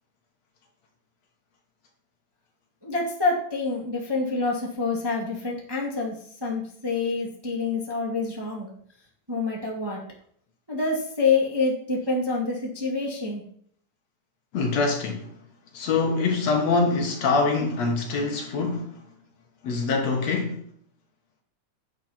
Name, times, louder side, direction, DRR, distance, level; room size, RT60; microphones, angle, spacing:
voice 1, 2.8-8.7 9.3-10.0 10.7-13.4, left 3 dB, 10° right, 1.4 m, -27 dB
voice 2, 14.5-15.3 15.7-19.0 19.6-20.6, left 4 dB, 60° left, 2.3 m, -24 dB
10.5 x 7.5 x 4.4 m
omnidirectional pair, 3.7 m